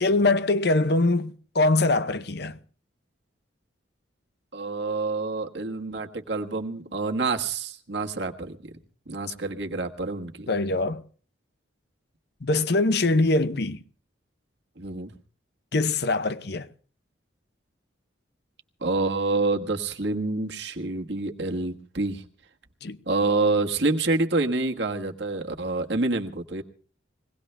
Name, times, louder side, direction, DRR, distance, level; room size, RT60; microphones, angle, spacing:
voice 1, 0.0-2.6 10.5-11.0 12.4-13.8 15.7-16.7 22.8-23.0, left 2 dB, 55° left, 0.7 m, -23 dB
voice 2, 4.5-8.6 9.1-10.5 14.8-15.1 18.8-22.2 23.0-26.6, right 3 dB, 65° right, 1.5 m, -27 dB
22.0 x 18.0 x 3.3 m
head